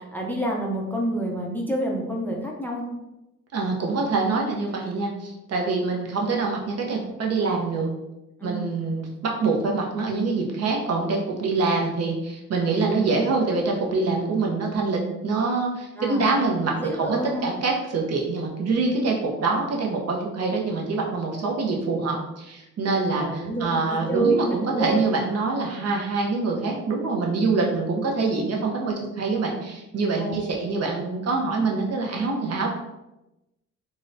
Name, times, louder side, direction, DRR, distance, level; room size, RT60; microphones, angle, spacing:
voice 1, 0.0-2.8 8.4-8.7 16.0-16.3 16.7-17.4 23.1-24.4 24.7-25.0 30.2-30.6, right 2 dB, 5° left, -2 dB, 0.5 m, -28 dB
voice 2, 3.5-7.9 8.4-32.7, right 3 dB, 55° right, -1 dB, 0.8 m, -25 dB
3.8 x 2.1 x 2.5 m, 0.94 s
cardioid pair, 90°, 30 cm